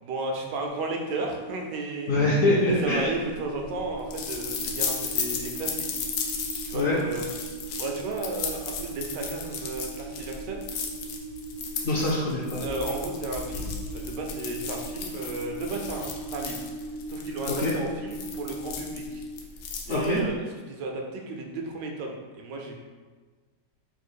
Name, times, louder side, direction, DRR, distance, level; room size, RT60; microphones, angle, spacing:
voice 1, 0.0-2.1 2.6-5.9 6.7-7.3 7.7-10.6 12.6-16.6 17.1-19.2 19.9-22.8, right 2 dB, 85° right, 1 dB, 1.3 m, -34 dB
sound 1, 0.7-19.3, right 3 dB, 65° right, 0.9 m, -40 dB
voice 2, 2.1-3.1 6.7-7.0 11.8-12.6 17.5-17.7 19.9-20.2, left 2 dB, 60° left, -6 dB, 0.9 m, -24 dB
sound 2, 2.9-20.3, left 5 dB, 90° left, 1.3 m, -35 dB
4.0 x 2.5 x 4.5 m, 1.4 s
omnidirectional pair, 1.8 m